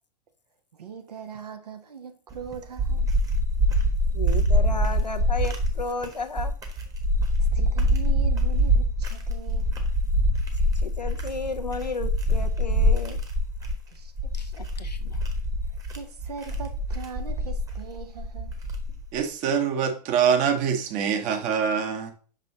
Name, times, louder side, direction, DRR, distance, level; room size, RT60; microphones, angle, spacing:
voice 1, 0.7-3.1 7.4-9.8 13.9-14.6 15.9-18.5, right 6 dB, 70° right, 1.1 m, -40 dB
sound 1, 2.3-19.2, equal, 15° right, 1.3 m, -25 dB
voice 2, 4.1-6.5 10.8-13.2 14.3-15.2, left 3 dB, 85° left, 0.7 m, -33 dB
voice 3, 19.1-22.1, right 7 dB, 40° right, 1.2 m, -24 dB
6.2 x 5.5 x 2.7 m
figure-of-eight pair, 90°, 21 cm